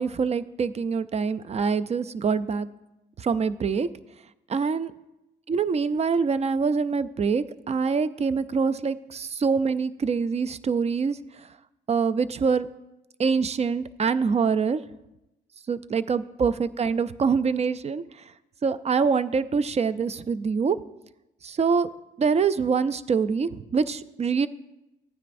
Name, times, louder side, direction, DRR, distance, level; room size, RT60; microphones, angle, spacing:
voice 1, 0.0-2.7 3.2-3.9 4.5-4.9 5.5-11.2 11.9-12.7 13.2-14.8 15.7-18.0 18.6-20.8 21.4-21.9 22.2-24.5, right 5 dB, 35° right, 14 dB, 0.5 m, -25 dB
15.0 x 9.5 x 2.6 m, 0.95 s
cardioid pair, 90°, 20 cm